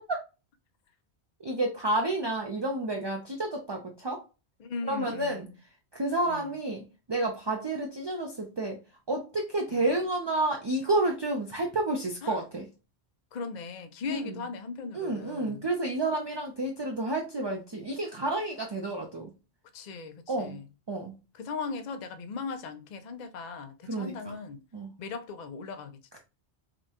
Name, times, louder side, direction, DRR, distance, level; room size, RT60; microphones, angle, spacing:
voice 1, 1.4-4.2 4.9-5.5 5.9-6.8 7.1-8.8 9.1-12.7 14.1-14.3 14.9-19.3 20.3-20.6 20.9-21.1 23.9-24.4 24.7-24.9, right 2 dB, 35° right, 0.4 m, -30 dB
voice 2, 4.6-5.6 6.3-6.5 9.7-9.9 12.2-12.4 13.3-15.7 19.7-20.7 21.3-24.6 25.0-26.2, left 4 dB, 50° left, 0.5 m, -38 dB
5.1 x 2.2 x 2.8 m
omnidirectional pair, 1.1 m